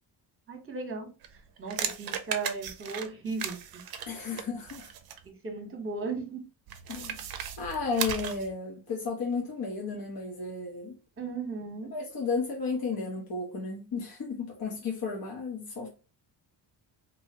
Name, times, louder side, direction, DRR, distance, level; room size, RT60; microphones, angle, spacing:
voice 1, 0.5-3.8 5.2-6.5 11.2-11.9, right 4 dB, 25° right, 1.0 m, -36 dB
sound 1, 1.2-5.3 6.7-8.5, right 8 dB, 50° right, 0.6 m, -36 dB
voice 2, 4.1-4.9 6.9-7.3 7.6-11.0 11.9-15.9, left 4 dB, 45° left, 0.9 m, -33 dB
2.8 x 2.7 x 2.8 m
supercardioid pair, 70°, 48 cm